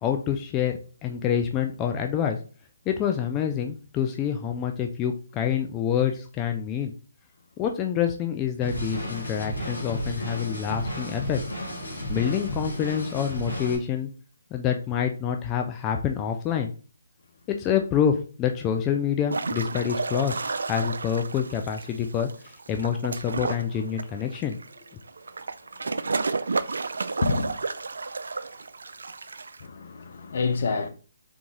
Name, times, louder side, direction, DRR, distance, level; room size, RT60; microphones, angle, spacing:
voice 1, 0.0-2.4 2.9-6.9 7.6-11.4 12.1-14.1 14.5-16.7 17.6-24.6, left 8 dB, 20° left, 0.3 m, -27 dB
sound 1, 8.6-13.8, equal, 80° left, 1.7 m, -33 dB
sound 2, 19.3-29.6, right 4 dB, 70° right, 0.3 m, -32 dB
voice 2, 27.2-27.5 29.6-30.9, left 4 dB, 55° left, 0.7 m, -27 dB
3.7 x 3.5 x 3.2 m
figure-of-eight pair, 145°, 0 cm